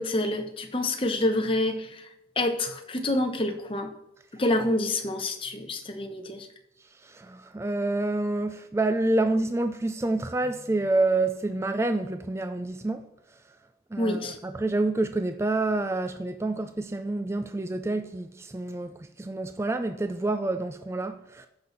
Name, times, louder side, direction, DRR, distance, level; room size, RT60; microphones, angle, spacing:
voice 1, 0.0-1.9 2.4-3.9 4.4-6.5 14.0-14.4, left 1 dB, 30° left, 1.0 m, -27 dB
voice 2, 7.0-13.1 13.9-21.5, right 2 dB, 15° right, 0.4 m, -28 dB
14.0 x 6.0 x 4.1 m
head